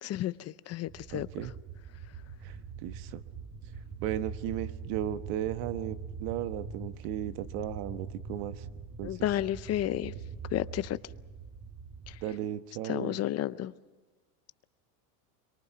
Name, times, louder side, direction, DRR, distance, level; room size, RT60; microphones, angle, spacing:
voice 1, 0.0-1.3 9.0-10.1 10.5-11.0 12.1-12.2 12.9-13.7, left 13 dB, 30° left, 16 dB, 0.6 m, -32 dB
sound 1, 0.9-12.2, right 5 dB, 35° right, 1.6 m, -43 dB
voice 2, 1.1-1.5 2.4-2.6 2.8-3.2 4.0-8.6 9.0-9.2 12.2-13.2, right 11 dB, 65° right, 11 dB, 1.3 m, -35 dB
26.5 x 23.5 x 5.9 m, 1.2 s
supercardioid pair, 130°, 48 cm